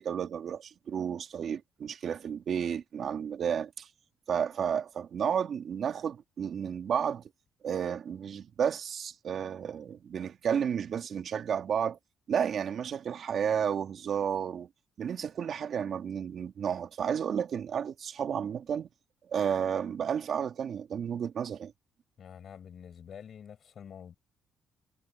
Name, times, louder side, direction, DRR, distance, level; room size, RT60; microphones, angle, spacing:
voice 1, 0.0-3.9 4.3-7.3 7.6-12.0 12.3-14.7 15.0-18.9 19.3-21.7, right 8 dB, 60° right, 2.5 m, -32 dB
voice 2, 22.2-24.2, left 8 dB, 55° left, 6.5 m, -47 dB
cardioid pair, 90°, 0 cm